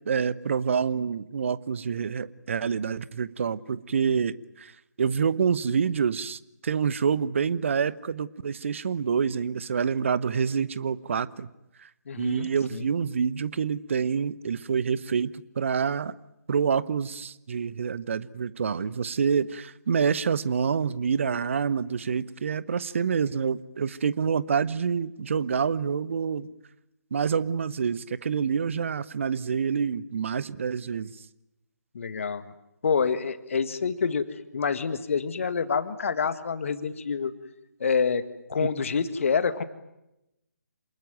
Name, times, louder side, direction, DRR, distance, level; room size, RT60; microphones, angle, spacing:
voice 1, 0.1-4.7 5.0-11.5 11.8-11.9 12.2-16.1 16.5-26.5 27.1-31.2, right 6 dB, 45° right, 18 dB, 1.0 m, -27 dB
voice 2, 12.1-12.8 31.9-32.5 32.8-37.3 37.8-38.2 38.5-39.6, left 5 dB, 50° left, 12 dB, 1.9 m, -27 dB
27.5 x 20.5 x 9.4 m, 0.89 s
figure-of-eight pair, 145°, 9 cm